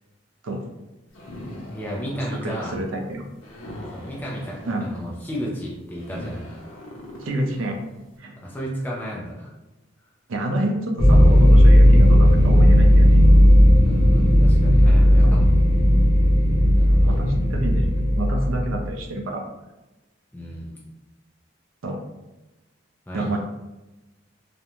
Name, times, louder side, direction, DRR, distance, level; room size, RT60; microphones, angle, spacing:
sound 1, 1.1-8.1, left 1 dB, 80° left, 0.6 m, -40 dB
voice 1, 1.7-2.8 3.9-6.4 8.3-9.5 13.9-15.8 16.8-17.2 20.3-20.8 23.1-23.4, equal, 10° left, -4 dB, 0.4 m, -33 dB
voice 2, 2.3-3.2 4.6-4.9 7.2-7.8 8.2-8.4 10.3-13.2 15.2-15.3 16.6-17.9 18.2-19.4 21.8-22.0 23.1-23.4, right 1 dB, 85° right, 2 dB, 0.5 m, -28 dB
sound 2, 11.0-18.9, equal, 65° right, 0.9 m, -14 dB
2.5 x 2.1 x 2.9 m, 1.1 s
head